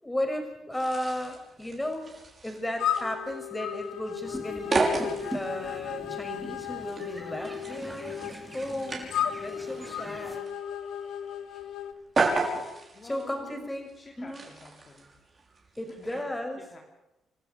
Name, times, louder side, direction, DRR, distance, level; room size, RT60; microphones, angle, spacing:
voice 1, 0.0-2.0 2.4-8.2 8.5-9.1 9.4-10.5 13.0-13.9 14.2-14.4 15.8-16.6, left 1 dB, 10° left, 4 dB, 6.3 m, -34 dB
sound 1, 0.7-16.2, right 3 dB, 35° right, 5.9 m, -35 dB
sound 2, 2.8-11.9, left 9 dB, 80° left, 1.4 m, -35 dB
sound 3, 4.2-10.4, right 1 dB, 5° right, 3.6 m, -43 dB
voice 2, 12.9-13.7 14.0-15.1 15.9-16.3 16.6-16.8, left 3 dB, 35° left, 1 dB, 3.2 m, -49 dB
29.0 x 13.0 x 8.6 m, 0.96 s
cardioid pair, 90°, 0 cm